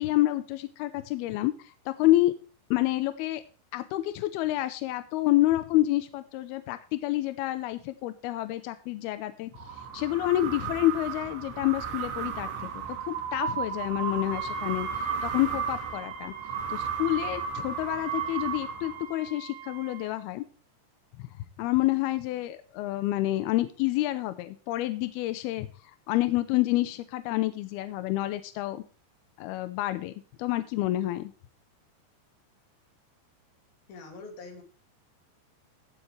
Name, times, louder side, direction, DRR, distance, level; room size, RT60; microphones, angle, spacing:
voice 1, 0.0-2.3 2.7-3.4 3.7-9.5 9.9-16.3 16.7-20.4 21.2-21.3 21.6-25.7 26.1-28.8 29.4-30.1 30.4-31.3, left 16 dB, 80° left, 11 dB, 2.3 m, -28 dB
sound 1, 9.5-19.3, right 7 dB, 80° right, 3.9 m, -34 dB
Wind instrument woodwind instrument, 14.3-20.2, right 4 dB, 50° right, 3.8 m, -45 dB
voice 2, 33.9-34.6, left 3 dB, 60° left, 3 dB, 4.2 m, -44 dB
17.0 x 7.8 x 3.3 m, 0.39 s
omnidirectional pair, 5.2 m